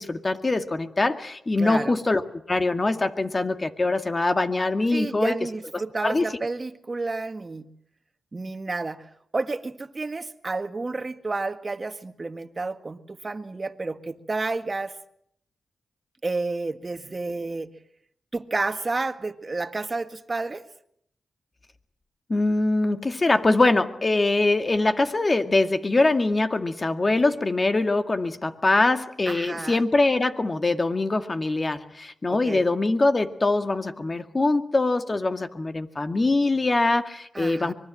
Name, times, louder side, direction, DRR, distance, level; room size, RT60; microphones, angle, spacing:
voice 1, 0.0-2.2 2.5-5.4 6.0-6.3 22.3-37.7, left 2 dB, 35° left, 8 dB, 2.1 m, -23 dB
voice 2, 1.6-2.0 4.9-7.7 8.3-9.1 9.3-15.0 16.2-17.7 18.3-20.6 29.3-29.8 32.3-32.7 37.3-37.7, right 3 dB, 40° right, 9 dB, 1.8 m, -30 dB
24.5 x 21.5 x 7.7 m, 0.74 s
cardioid pair, 55°, 0 cm